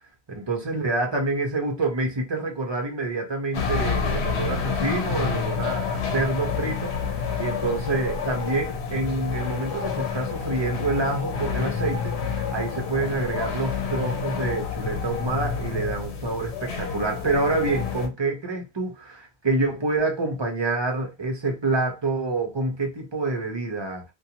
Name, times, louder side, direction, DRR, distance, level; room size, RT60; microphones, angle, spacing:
voice 1, 0.3-24.0, right 2 dB, 30° right, 0.6 m, -27 dB
sound 1, 3.5-18.1, left 6 dB, 85° left, 0.9 m, -29 dB
2.5 x 2.2 x 2.8 m
omnidirectional pair, 1.1 m